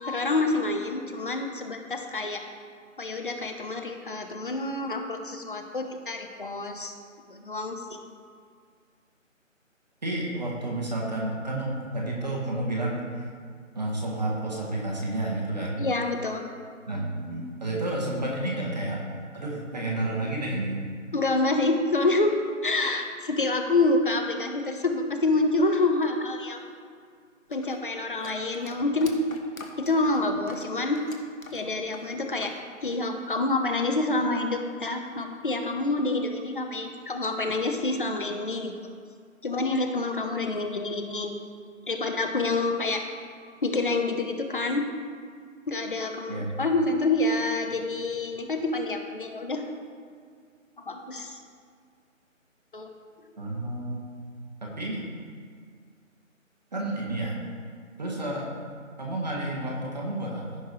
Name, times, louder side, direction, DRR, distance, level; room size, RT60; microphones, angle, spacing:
voice 1, 0.0-2.4 3.0-6.9 7.3-7.8 15.8-16.5 21.1-22.3 22.6-26.6 27.5-29.2 29.8-31.0 31.5-32.5 32.8-38.7 39.4-41.3 41.9-43.0 43.6-44.9 45.7-49.6 50.9-51.4 52.7-52.9, left 2 dB, 40° left, 4 dB, 0.8 m, -27 dB
voice 2, 10.0-13.3 13.7-15.8 16.9-19.1 19.3-20.8 46.3-46.5 53.4-54.0 54.6-55.1 56.7-57.4 58.0-58.5 59.0-60.6, right 1 dB, 30° right, -3 dB, 1.2 m, -30 dB
sound 1, 27.5-32.6 32.9-33.7, left 3 dB, 90° left, 1.3 m, -46 dB
15.0 x 5.4 x 3.1 m, 2.1 s
figure-of-eight pair, 160°, 40 cm